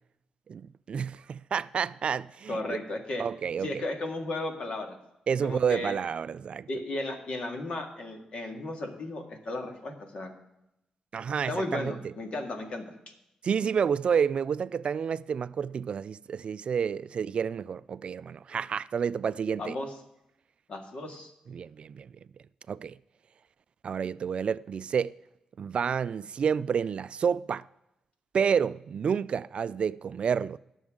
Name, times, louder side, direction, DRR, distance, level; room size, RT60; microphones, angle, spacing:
voice 1, 0.5-2.8 3.2-3.8 5.3-6.7 11.1-11.9 13.4-19.7 21.5-22.1 22.7-23.0 23.8-25.1 25.6-27.6 28.3-30.6, right 7 dB, 55° right, 0.3 m, -29 dB
voice 2, 2.5-3.2 3.6-5.0 5.4-6.0 6.7-10.4 11.5-12.9 19.5-19.9 20.7-21.3, left 2 dB, 55° left, 2.0 m, -35 dB
20.5 x 7.2 x 3.8 m
cardioid pair, 85°, 2 cm